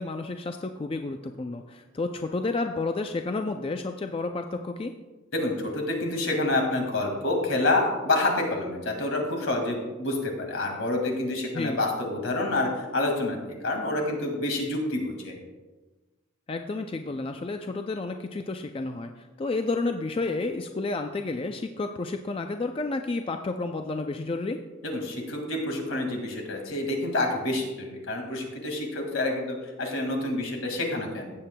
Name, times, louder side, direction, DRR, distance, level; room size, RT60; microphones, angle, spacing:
voice 1, 0.0-4.9 11.5-11.8 16.5-19.1 19.4-24.6, left 3 dB, 25° left, 6 dB, 0.3 m, -31 dB
voice 2, 5.3-15.4 24.8-31.3, left 2 dB, 75° left, 2 dB, 2.0 m, -28 dB
16.0 x 7.4 x 2.2 m, 1.2 s
head